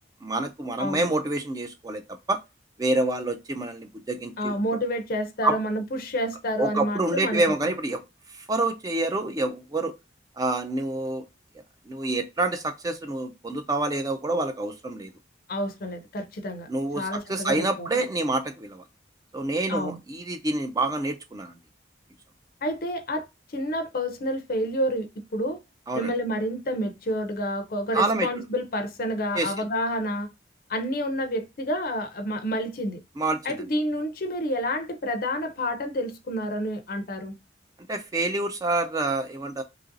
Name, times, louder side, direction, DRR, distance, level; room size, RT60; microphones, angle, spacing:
voice 1, 0.2-2.0 2.3-2.4 2.8-4.5 5.4-5.6 6.6-8.0 8.3-9.9 10.4-11.2 11.9-15.1 16.7-18.8 19.3-21.6 25.9-26.1 27.9-28.3 29.3-29.7 33.2-33.6 37.9-39.6, right 2 dB, 20° right, 0.3 m, -27 dB
voice 2, 4.4-7.6 15.5-16.7 17.0-18.0 19.7-20.0 22.6-23.3 23.5-25.6 25.9-30.3 30.7-33.0 33.4-37.3, equal, 50° left, 0.5 m, -29 dB
2.9 x 2.6 x 2.5 m
head